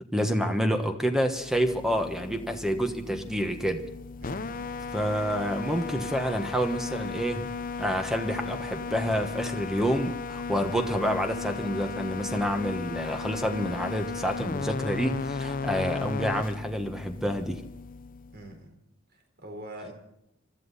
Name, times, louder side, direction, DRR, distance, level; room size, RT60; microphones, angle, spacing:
voice 1, 0.1-3.8 4.9-7.5 7.8-17.6, equal, ahead, 6 dB, 1.2 m, -28 dB
sound 1, 1.3-18.5, left 4 dB, 40° left, 0.6 m, -36 dB
voice 2, 4.2-4.7 18.3-18.8 19.1-19.9, right 1 dB, 50° right, 4 dB, 4.1 m, -43 dB
25.0 x 13.5 x 4.2 m, 0.80 s
head